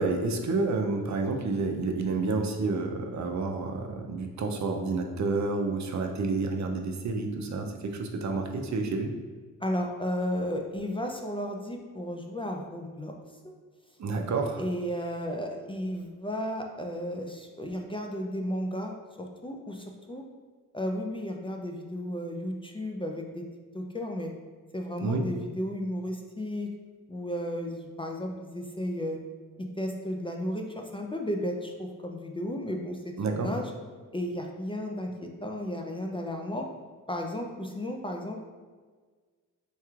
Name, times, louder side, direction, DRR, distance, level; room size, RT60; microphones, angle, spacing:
voice 1, 0.0-9.1 14.0-14.6 25.0-25.2 33.2-33.5, right 3 dB, 60° right, 3 dB, 0.5 m, -29 dB
voice 2, 9.6-13.1 14.6-20.2 20.7-23.4 23.7-24.3 24.7-26.7 27.1-29.2 29.8-33.7 34.1-36.7 37.1-38.4, equal, 15° left, 2 dB, 0.4 m, -34 dB
4.6 x 3.0 x 2.4 m, 1.5 s
cardioid pair, 60°, 33 cm